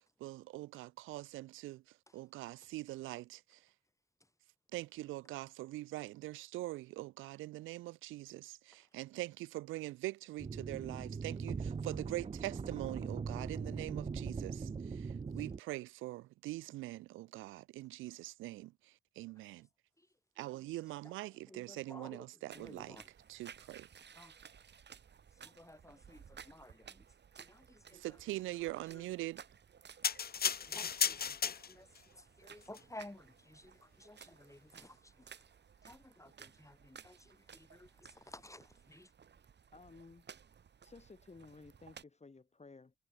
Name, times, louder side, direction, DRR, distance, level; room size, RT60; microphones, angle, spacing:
voice 1, 0.0-3.7 4.7-19.7 20.4-23.0 23.3-23.9 27.9-29.4, right 18 dB, 90° right, 0.8 m, -43 dB
sound 1, 10.4-15.6, right 5 dB, 30° right, 0.7 m, -40 dB
voice 2, 20.0-20.6 21.0-23.1 24.1-24.4 25.3-27.1 27.3-29.1 30.7-39.1, left 1 dB, 15° left, 6.9 m, -56 dB
sound 2, 22.5-42.0, right 7 dB, 60° right, 2.4 m, -58 dB
sound 3, 30.0-32.0 32.7-32.8, left 7 dB, 50° left, 1.1 m, -34 dB
voice 3, 39.7-40.2 40.8-42.9, left 3 dB, 35° left, 2.7 m, -55 dB
supercardioid pair, 40°, 20 cm